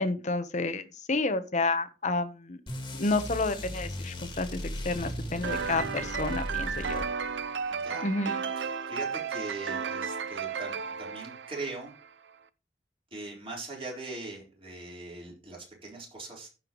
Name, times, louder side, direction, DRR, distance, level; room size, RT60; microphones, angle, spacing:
voice 1, 0.0-2.6 3.0-4.6 4.8-7.0 8.0-8.4, left 3 dB, 45° left, 10 dB, 1.0 m, -30 dB
sound 1, 2.7-7.5, left 1 dB, 25° left, 2.0 m, -37 dB
sound 2, 5.4-12.1, right 6 dB, 85° right, 0.7 m, -34 dB
voice 2, 7.7-8.1 8.6-11.9 13.1-16.5, right 3 dB, 30° right, -2 dB, 4.2 m, -41 dB
15.5 x 5.7 x 3.1 m, 0.31 s
head